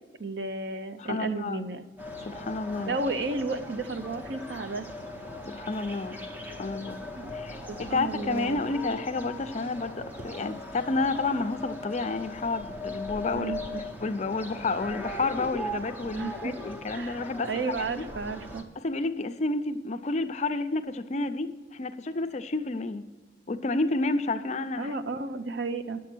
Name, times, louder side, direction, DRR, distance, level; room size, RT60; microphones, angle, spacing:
voice 1, 0.2-1.8 2.9-4.9 7.1-7.4 7.7-8.6 13.3-13.8 16.1-16.5 16.9-18.6 24.8-26.0, right 3 dB, 60° right, 11 dB, 0.6 m, -33 dB
voice 2, 1.0-1.6 2.2-3.0 5.5-6.2 6.6-7.0 7.3-13.5 14.0-18.1 18.8-23.0 23.5-24.9, left 3 dB, 35° left, 9 dB, 0.5 m, -30 dB
sound 1, 2.0-18.6, left 1 dB, 10° right, 0.7 m, -39 dB
10.0 x 7.3 x 6.0 m, 1.4 s
head